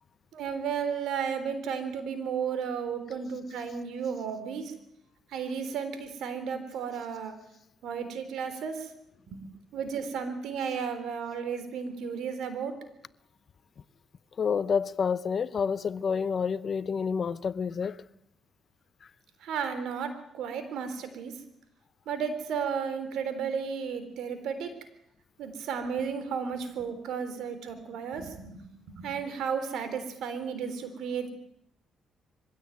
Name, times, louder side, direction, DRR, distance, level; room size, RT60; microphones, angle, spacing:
voice 1, 0.3-4.7 5.3-7.3 7.8-8.9 9.3-9.4 9.7-12.8 19.4-21.3 22.1-24.7 25.4-31.3, right 6 dB, 80° right, 3.7 m, -33 dB
voice 2, 14.4-18.0, left 6 dB, 50° left, 0.8 m, -28 dB
22.5 x 16.5 x 9.2 m
cardioid pair, 90°, 0 cm